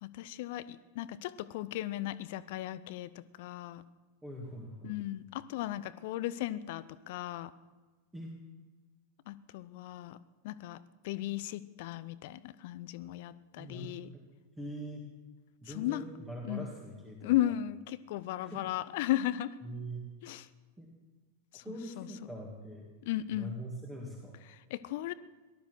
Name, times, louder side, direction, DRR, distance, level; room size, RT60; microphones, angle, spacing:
voice 1, 0.0-3.8 4.8-7.5 9.3-10.2 10.4-14.1 15.7-16.0 16.4-16.6 17.2-19.6 20.2-20.5 21.5-21.6 22.0-22.1 23.1-23.6 24.5-25.1, left 14 dB, 50° left, 17 dB, 0.6 m, -36 dB
voice 2, 4.2-5.0 8.1-8.3 13.6-14.2 14.6-15.1 15.6-17.5 18.4-18.6 19.6-20.0 20.8-20.9 21.5-22.9 23.3-24.4, right 1 dB, 10° right, -1 dB, 2.4 m, -43 dB
18.0 x 12.5 x 6.3 m, 1.3 s
figure-of-eight pair, 90°, 0 cm